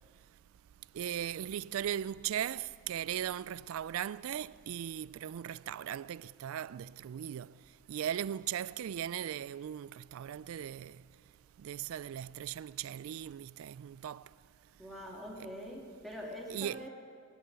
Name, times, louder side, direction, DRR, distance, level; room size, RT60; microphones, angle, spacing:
voice 1, 0.9-7.5 7.9-11.0 11.6-14.2 15.4-15.5 16.5-16.8, right 10 dB, 80° right, 0.3 m, -38 dB
voice 2, 14.8-16.9, equal, ahead, 2.3 m, -44 dB
19.5 x 7.1 x 8.7 m
head